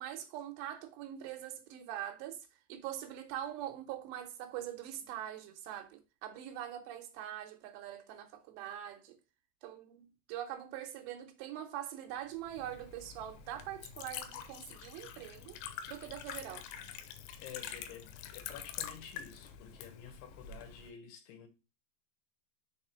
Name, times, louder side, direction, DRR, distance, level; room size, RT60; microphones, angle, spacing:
voice 1, 0.0-9.2 9.6-15.6 15.9-16.7, right 11 dB, 80° right, 2.8 m, -43 dB
Liquid, 12.4-20.9, left 9 dB, 90° left, 3.1 m, -46 dB
voice 2, 17.4-21.5, left 8 dB, 75° left, 3.0 m, -50 dB
6.6 x 4.2 x 4.3 m
omnidirectional pair, 5.2 m